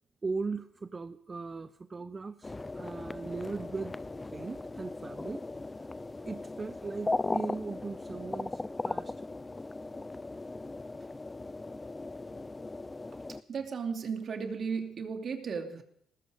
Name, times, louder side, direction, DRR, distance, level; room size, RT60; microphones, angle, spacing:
voice 1, 0.2-4.0 4.2-5.4 6.3-9.1, right 4 dB, 30° right, 11 dB, 0.8 m, -38 dB
sound 1, 2.4-13.4, left 2 dB, 20° left, 0.6 m, -38 dB
voice 2, 13.5-15.8, right 5 dB, 55° right, 4 dB, 2.7 m, -35 dB
19.0 x 14.5 x 5.1 m, 0.67 s
cardioid pair, 90°, 0 cm